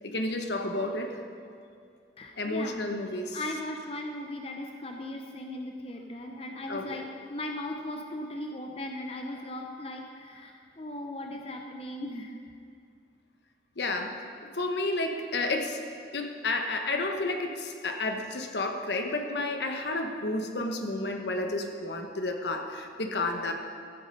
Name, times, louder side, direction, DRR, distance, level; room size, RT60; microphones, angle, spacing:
voice 1, 0.0-1.2 2.4-3.4 6.7-7.0 13.8-14.1 14.5-15.8 16.1-23.5, left 2 dB, 70° left, 4 dB, 1.1 m, -31 dB
voice 2, 2.2-2.9 3.3-12.4, left 1 dB, 30° left, 2 dB, 0.7 m, -38 dB
14.5 x 8.7 x 5.3 m, 2.4 s
head